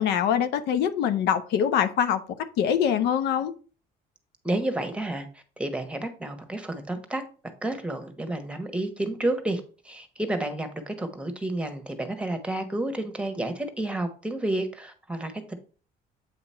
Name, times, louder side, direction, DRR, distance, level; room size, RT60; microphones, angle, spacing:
voice 1, 0.0-2.2 2.6-3.5, left 8 dB, 80° left, 0.8 m, -24 dB
voice 2, 4.4-5.3 5.6-7.2 7.6-15.5, right 1 dB, 5° right, 1.2 m, -30 dB
8.3 x 2.9 x 5.5 m
cardioid pair, 110°, 17 cm